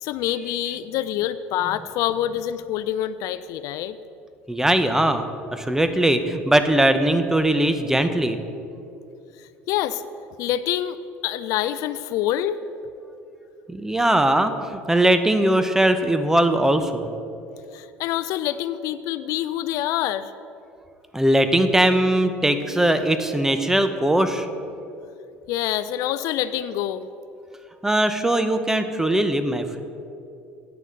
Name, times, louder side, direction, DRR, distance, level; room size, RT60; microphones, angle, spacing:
voice 1, 0.0-4.0 9.4-10.0 10.4-11.0 11.2-12.6 17.7-20.3 25.5-27.1, left 12 dB, 65° left, 13 dB, 0.4 m, -26 dB
voice 2, 4.5-5.2 5.5-8.4 13.7-17.1 21.1-24.5 27.8-29.8, right 1 dB, 10° right, 9 dB, 0.8 m, -20 dB
9.0 x 6.5 x 6.5 m, 2.6 s
hypercardioid pair, 75°, 6 cm